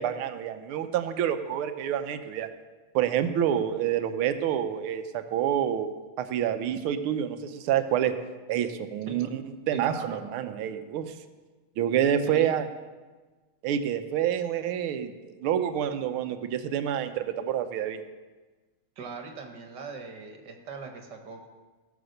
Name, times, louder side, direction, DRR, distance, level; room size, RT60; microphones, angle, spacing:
voice 1, 0.0-2.5 3.0-8.2 8.5-9.4 9.7-11.2 11.8-12.7 13.6-18.0, right 9 dB, 80° right, 9 dB, 1.6 m, -28 dB
voice 2, 9.7-10.2 12.2-12.5 19.0-21.5, right 4 dB, 55° right, 5 dB, 1.8 m, -40 dB
18.0 x 6.1 x 6.6 m, 1.3 s
omnidirectional pair, 2.4 m